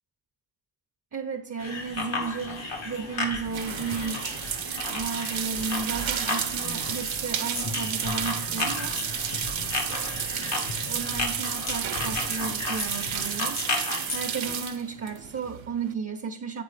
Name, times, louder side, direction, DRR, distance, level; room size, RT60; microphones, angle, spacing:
voice 1, 1.1-4.2 4.9-9.0 9.9-13.6 14.1-16.6, right 5 dB, 35° right, 4 dB, 0.5 m, -34 dB
sound 1, 1.6-14.5, left 3 dB, 90° left, 1.3 m, -34 dB
sound 2, 2.7-15.9, right 9 dB, 80° right, 0.6 m, -32 dB
sound 3, 2.8-13.8, left 3 dB, 50° left, 0.7 m, -43 dB
8.2 x 4.3 x 3.2 m, 0.79 s
wide cardioid pair, 80°, 46 cm